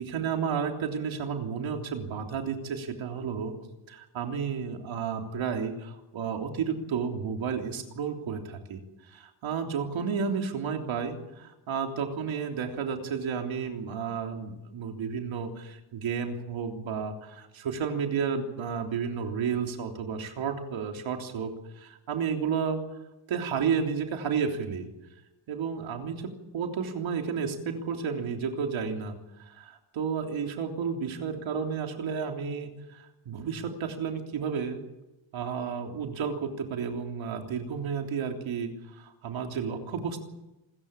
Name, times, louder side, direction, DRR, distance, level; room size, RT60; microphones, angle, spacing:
voice 1, 0.0-3.6 3.9-8.8 9.1-22.8 23.3-24.9 25.5-34.8 35.3-40.2, right 6 dB, 75° right, 3 dB, 3.5 m, -32 dB
27.0 x 14.5 x 8.6 m, 0.98 s
wide cardioid pair, 160°, 47 cm